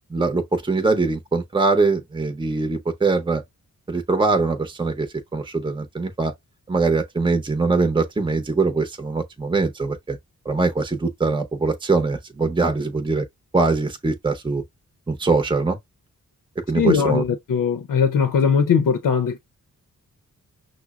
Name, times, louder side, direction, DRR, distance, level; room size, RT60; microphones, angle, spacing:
voice 1, 0.1-3.4 3.9-6.3 6.7-10.2 10.4-13.3 13.5-14.6 15.1-15.8 16.7-17.2, right 3 dB, 15° right, 0.7 m, -22 dB
voice 2, 16.7-19.4, left 6 dB, 75° left, 0.6 m, -20 dB
6.0 x 2.0 x 2.4 m
cardioid pair, 80°, 32 cm